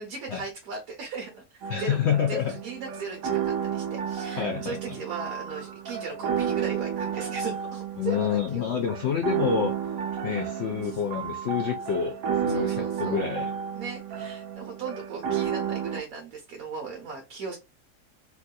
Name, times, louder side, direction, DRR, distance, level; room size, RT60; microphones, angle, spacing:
voice 1, 0.0-2.0 2.3-8.7 10.8-11.0 12.5-13.2 13.8-17.6, right 4 dB, 65° right, 1.3 m, -38 dB
sound 1, 1.6-16.0, right 8 dB, 85° right, 1.2 m, -31 dB
voice 2, 1.7-2.5 4.4-5.0 8.0-9.8 10.2-12.2 12.4-13.5, left 8 dB, 80° left, 0.6 m, -28 dB
3.5 x 2.7 x 2.2 m
omnidirectional pair, 1.7 m